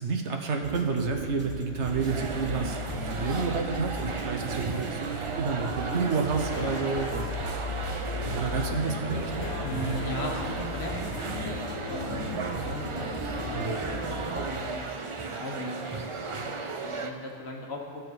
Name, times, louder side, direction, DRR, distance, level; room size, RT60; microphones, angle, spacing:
voice 1, 0.0-2.8 3.0-7.3 8.4-9.5 13.5-13.8, right 4 dB, 70° right, 3 dB, 1.2 m, -30 dB
sound 1, 0.6-14.5, equal, 10° right, 1.2 m, -37 dB
sound 2, 1.8-17.1, right 4 dB, 45° right, 0.4 m, -35 dB
sound 3, 6.5-14.0, left 6 dB, 80° left, 1.0 m, -42 dB
voice 2, 9.6-10.9 11.2-11.5 11.9-12.3 12.6-14.9 15.2-17.8, left 1 dB, 60° left, 0 dB, 1.5 m, -38 dB
14.5 x 6.8 x 4.1 m, 2.1 s
omnidirectional pair, 1.3 m